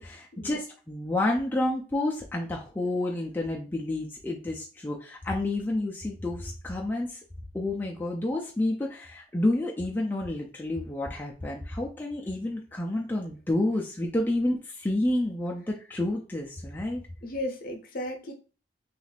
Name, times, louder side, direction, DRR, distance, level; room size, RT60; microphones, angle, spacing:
voice 1, 0.0-7.2 7.5-17.0, left 1 dB, 10° left, -2 dB, 0.3 m, -29 dB
voice 2, 17.2-18.3, left 1 dB, 50° left, 3 dB, 0.7 m, -35 dB
3.0 x 2.4 x 3.3 m, 0.37 s
head